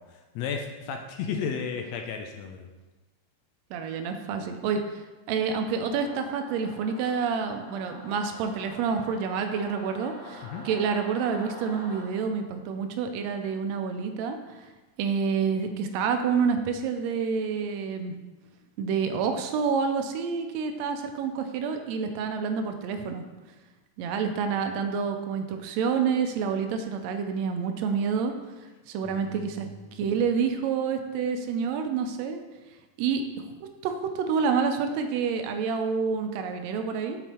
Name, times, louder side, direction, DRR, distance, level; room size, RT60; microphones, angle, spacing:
voice 1, 0.0-2.7 10.4-10.6 29.0-29.6 29.9-30.0, left 6 dB, 80° left, 4 dB, 1.6 m, -34 dB
voice 2, 3.7-5.0 5.3-14.6 15.0-18.1 18.8-23.2 24.0-28.3 28.9-32.4 33.0-33.2 33.8-37.2, right 6 dB, 80° right, 6 dB, 1.7 m, -28 dB
Singing / Musical instrument, 5.8-12.0, equal, 40° left, 0.9 m, -45 dB
7.2 x 3.9 x 4.2 m, 1.2 s
omnidirectional pair, 3.4 m